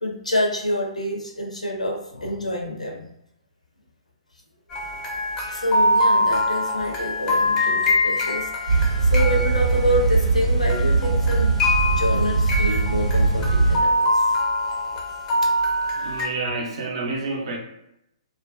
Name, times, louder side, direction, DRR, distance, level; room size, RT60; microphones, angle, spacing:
voice 1, 0.0-3.1 5.5-11.5 11.9-14.4 15.1-15.2, left 1 dB, 80° left, 0 dB, 0.5 m, -27 dB
sound 1, 4.7-10.4 10.7-16.3, left 1 dB, 15° left, 0.4 m, -24 dB
sound 2, 8.7-13.8, right 4 dB, 85° right, 0.8 m, -20 dB
voice 2, 16.0-17.6, right 3 dB, 50° right, -1 dB, 0.6 m, -29 dB
2.5 x 2.1 x 2.2 m, 0.80 s
figure-of-eight pair, 125°, 4 cm